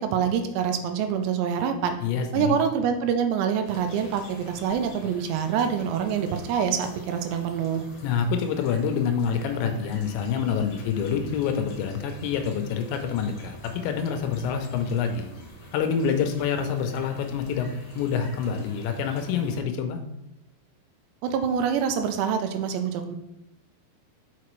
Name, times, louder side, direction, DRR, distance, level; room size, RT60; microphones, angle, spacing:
voice 1, 0.0-2.0 2.3-7.8 21.2-23.2, right 7 dB, 80° right, 6 dB, 2.6 m, -26 dB
voice 2, 2.0-2.6 8.0-15.3 15.7-17.7 18.0-20.0, left 6 dB, 85° left, 6 dB, 2.9 m, -27 dB
sound 1, 3.6-19.6, left 2 dB, 50° left, 2.1 m, -45 dB
5.9 x 5.7 x 3.1 m, 0.91 s
omnidirectional pair, 5.2 m